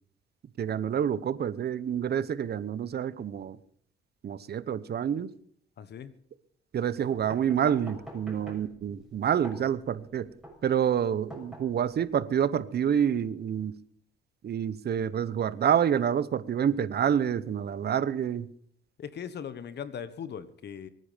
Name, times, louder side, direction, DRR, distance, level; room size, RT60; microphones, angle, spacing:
voice 1, 0.6-3.6 4.2-5.3 6.7-10.3 10.6-13.8 14.4-18.5, right 8 dB, 55° right, 1.0 m, -28 dB
voice 2, 5.8-6.1 19.0-20.9, left 7 dB, 60° left, 1.3 m, -39 dB
sound 1, 7.1-12.1, equal, ahead, 6.5 m, -47 dB
23.5 x 9.8 x 5.2 m
cardioid pair, 90°, 20 cm